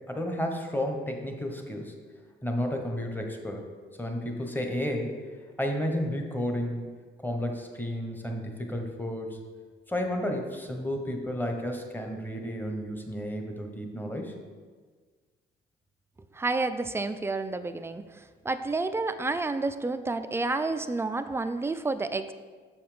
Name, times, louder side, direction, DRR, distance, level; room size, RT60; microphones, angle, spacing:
voice 1, 0.1-2.0 2.4-3.7 4.0-5.1 5.6-6.8 7.2-9.4 9.9-14.4, equal, 10° left, 3 dB, 1.1 m, -32 dB
voice 2, 16.3-22.3, right 3 dB, 10° right, 10 dB, 0.4 m, -30 dB
6.9 x 5.7 x 5.1 m, 1.5 s
cardioid pair, 90°, 20 cm